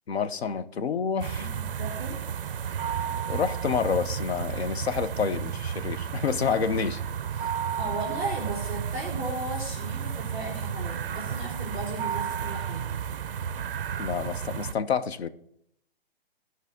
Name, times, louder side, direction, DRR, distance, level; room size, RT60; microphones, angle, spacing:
voice 1, 0.1-1.5 3.3-7.0 14.0-15.3, left 6 dB, 85° left, 1.0 m, -28 dB
sound 1, 1.2-14.7, right 8 dB, 60° right, 0.6 m, -32 dB
voice 2, 1.4-2.2 7.8-13.0, right 2 dB, 15° left, 2.3 m, -36 dB
15.0 x 5.7 x 3.7 m
hypercardioid pair, 180°, 31 cm